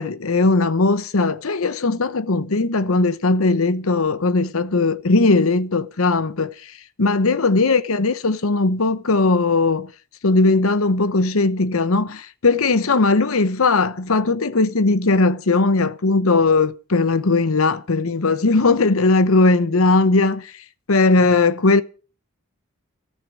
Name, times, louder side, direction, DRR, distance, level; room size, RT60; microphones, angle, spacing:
voice 1, 0.0-6.7 7.0-9.9 10.2-20.5 20.9-21.8, left 3 dB, 75° left, 0.9 m, -18 dB
14.0 x 9.7 x 8.2 m
head